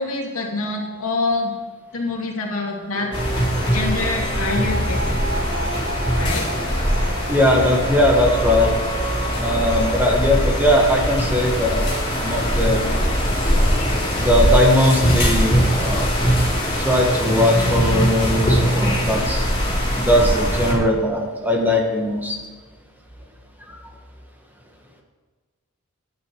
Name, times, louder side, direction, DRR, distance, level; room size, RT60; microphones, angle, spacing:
voice 1, 0.0-1.5 1.9-3.1 3.7-5.2 6.2-6.5, left 3 dB, 70° left, 0 dB, 2.5 m, -25 dB
sound 1, 2.9-9.8, right 2 dB, 50° right, 1.8 m, -32 dB
sound 2, 3.1-20.7, equal, 25° left, 4.1 m, -21 dB
voice 2, 7.3-8.7 9.4-11.8 12.2-13.0 14.2-16.1 16.8-19.4 20.0-22.4, left 1 dB, 10° right, 0 dB, 1.6 m, -19 dB
12.0 x 10.0 x 4.7 m, 1.4 s
head